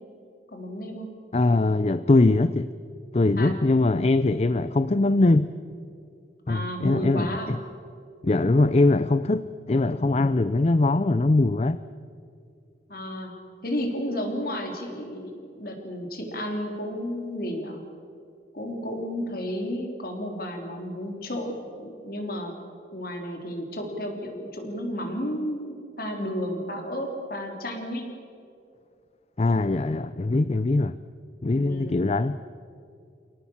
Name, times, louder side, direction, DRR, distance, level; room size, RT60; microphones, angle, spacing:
voice 1, 0.5-1.1 3.4-3.5 6.5-7.5 12.9-13.3 13.6-17.8 18.5-22.5 22.9-28.1 31.5-32.1, equal, 55° left, 3 dB, 3.8 m, -32 dB
voice 2, 1.3-2.7 3.1-5.5 6.5-7.6 8.2-11.8 29.4-30.9 31.4-32.4, left 2 dB, 35° left, 13 dB, 0.5 m, -22 dB
28.0 x 18.0 x 7.3 m, 2.4 s
head